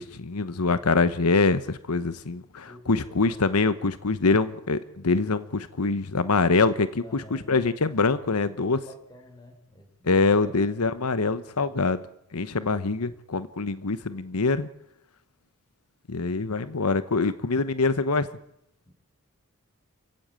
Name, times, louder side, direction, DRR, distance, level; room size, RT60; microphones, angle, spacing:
voice 1, 0.0-7.2 7.5-8.8 10.1-12.0 12.3-14.7 16.1-18.3, left 3 dB, 90° left, 13 dB, 1.0 m, -24 dB
voice 2, 2.6-3.4 7.0-7.5 8.2-8.3 8.5-10.1 18.9-19.0, left 1 dB, 20° left, 3 dB, 6.5 m, -49 dB
27.5 x 16.0 x 8.9 m, 0.80 s
head